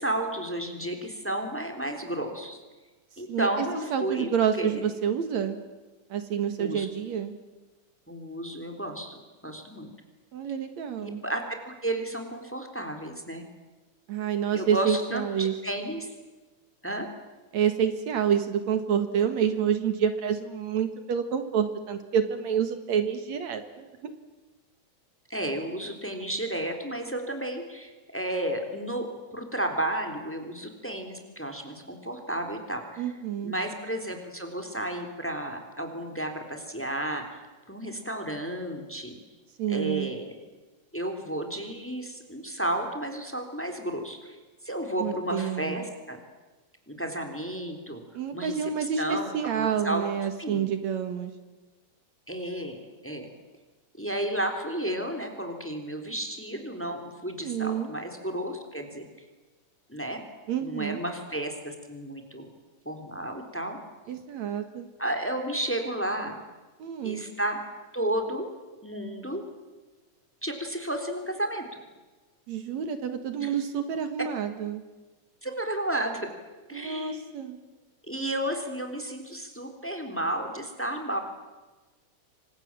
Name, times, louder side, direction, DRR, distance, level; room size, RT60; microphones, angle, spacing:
voice 1, 0.0-2.6 3.2-4.8 6.6-6.9 8.1-9.9 11.0-13.5 14.5-16.1 16.8-17.1 25.3-29.1 29.3-33.0 33.4-37.2 37.7-39.2 39.7-40.3 40.9-44.4 44.6-46.2 46.9-48.0 48.3-48.7 49.0-50.0 50.4-50.7 52.3-52.8 53.0-53.3 54.0-59.1 59.9-60.2 60.6-62.5 62.9-63.8 65.0-66.4 67.0-67.6 67.9-68.5 68.8-69.4 70.4-71.6 73.4-73.5 75.4-76.3 76.7-77.3 78.1-81.2, right 1 dB, 5° left, 5 dB, 3.4 m, -32 dB
voice 2, 3.3-5.6 6.1-7.3 10.3-11.2 14.1-15.5 17.5-24.1 33.0-33.5 39.6-40.1 45.0-45.9 48.1-51.3 57.4-57.9 60.5-61.0 64.1-64.9 66.8-67.2 72.5-74.8 76.7-77.6, right 8 dB, 70° right, 8 dB, 2.8 m, -28 dB
28.5 x 25.0 x 7.6 m, 1.2 s
omnidirectional pair, 3.4 m